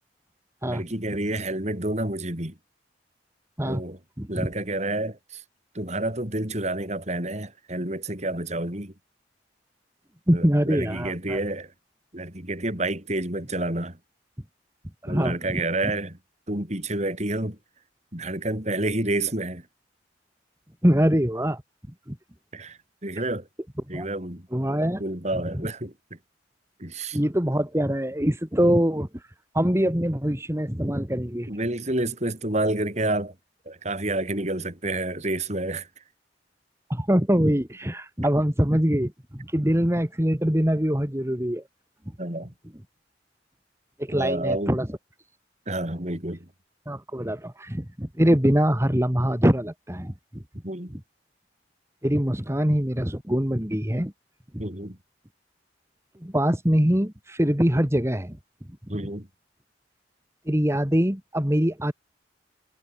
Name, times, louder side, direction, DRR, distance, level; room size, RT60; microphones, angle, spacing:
voice 1, 0.6-2.6 3.6-4.0 4.3-5.4 5.7-8.9 10.3-11.7 12.1-14.0 15.1-16.2 16.5-17.6 18.1-19.7 22.5-23.5 23.9-24.5 25.0-25.9 26.8-27.2 28.6-28.8 31.5-33.3 33.6-35.9 42.2-42.5 44.1-44.8 45.7-46.5 50.6-50.9 54.6-55.0 58.9-59.3, right 2 dB, 40° right, 5.0 m, -29 dB
voice 2, 4.2-4.5 10.3-11.4 15.0-15.4 20.8-21.6 22.1-22.2 23.9-24.1 24.5-25.0 25.5-25.7 27.1-29.2 29.5-31.5 36.9-41.6 44.0-44.9 46.9-50.1 52.0-54.1 54.5-54.6 56.2-58.4 58.9-59.0 60.5-61.9, equal, 15° right, 2.3 m, -23 dB
head